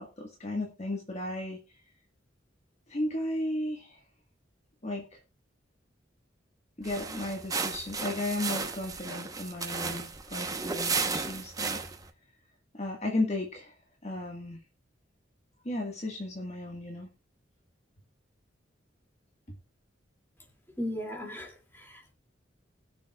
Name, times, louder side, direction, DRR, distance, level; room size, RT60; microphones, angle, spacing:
voice 1, 0.0-1.6 2.9-4.0 4.8-5.2 6.8-11.8 12.7-13.7 14.0-14.6 15.6-17.1, left 1 dB, 35° left, 1 dB, 1.6 m, -34 dB
sound 1, 6.8-12.1, right 4 dB, 20° right, 1.0 m, -34 dB
voice 2, 20.8-22.1, left 1 dB, 10° left, 2 dB, 2.6 m, -37 dB
20.5 x 7.0 x 2.4 m, 0.28 s
head